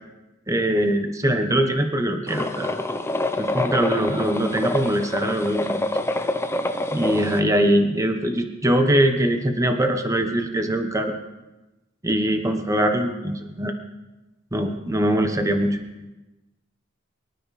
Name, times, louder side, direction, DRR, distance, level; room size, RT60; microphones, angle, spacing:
voice 1, 0.5-2.8 3.4-5.9 6.9-11.1 12.0-13.7 14.5-15.8, right 1 dB, 15° right, 5 dB, 1.2 m, -22 dB
sound 1, 2.3-7.4, left 1 dB, 10° left, 0.8 m, -26 dB
23.5 x 13.0 x 4.2 m, 1.1 s
head